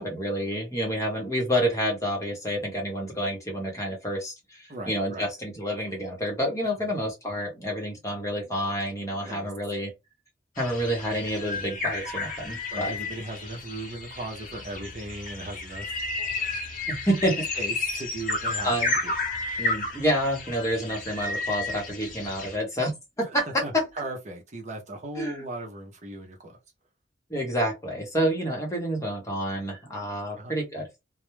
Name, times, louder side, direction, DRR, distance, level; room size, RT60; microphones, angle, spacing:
voice 1, 0.0-9.9 10.6-12.9 16.9-17.5 18.6-18.9 19.6-23.9 25.2-25.4 27.3-30.9, equal, 15° left, 0.8 m, -28 dB
voice 2, 4.7-5.3 9.2-9.5 12.7-16.6 17.5-19.1 23.2-26.6 30.4-30.6, right 2 dB, 40° right, 0.6 m, -38 dB
sound 1, 10.6-22.5, left 3 dB, 45° left, 0.7 m, -32 dB
2.2 x 2.0 x 3.0 m
head